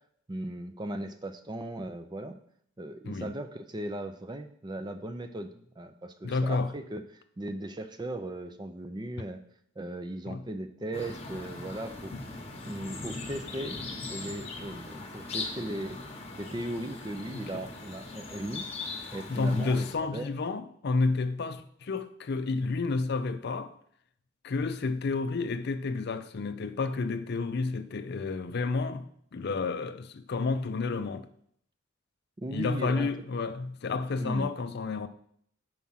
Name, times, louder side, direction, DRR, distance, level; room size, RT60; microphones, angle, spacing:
voice 1, 0.3-2.4 2.8-9.4 9.8-12.1 12.6-13.8 14.1-16.0 16.4-18.7 19.1-20.3 32.4-33.1 34.2-34.5, right 1 dB, 20° right, 0.4 m, -37 dB
voice 2, 6.2-6.8 10.3-10.5 17.3-17.6 19.3-23.7 24.4-31.3 32.5-35.1, left 3 dB, 50° left, 0.4 m, -30 dB
sound 1, 10.9-19.9, left 3 dB, 30° left, 1.0 m, -40 dB
7.3 x 4.7 x 5.6 m
head